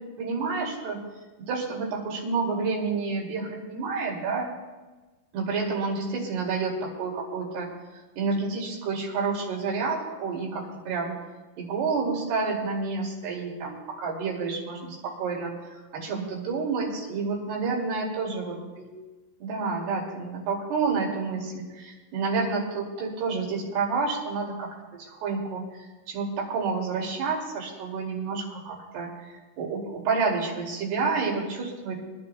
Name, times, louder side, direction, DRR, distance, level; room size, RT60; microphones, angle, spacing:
voice 1, 0.2-1.0 1.5-4.5 5.3-7.7 8.2-11.1 11.6-15.5 15.9-19.0 19.4-32.0, right 4 dB, 75° right, -1 dB, 4.5 m, -29 dB
25.0 x 12.5 x 2.2 m, 1.2 s
omnidirectional pair, 4.7 m